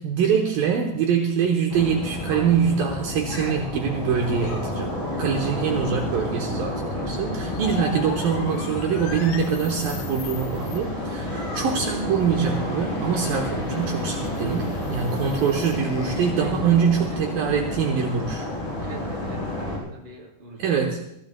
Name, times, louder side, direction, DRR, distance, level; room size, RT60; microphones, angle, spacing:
voice 1, 0.0-18.5 20.6-21.0, right 6 dB, 85° right, 2 dB, 2.0 m, -24 dB
sound 1, 1.7-19.8, left 1 dB, 25° left, 4.4 m, -30 dB
sound 2, 7.5-16.3, left 9 dB, 80° left, 2.1 m, -41 dB
voice 2, 16.3-16.7 17.0-17.4 17.6-17.8 18.8-20.9, right 2 dB, 15° right, -1 dB, 2.3 m, -43 dB
24.5 x 14.5 x 2.3 m, 0.77 s
omnidirectional pair, 5.5 m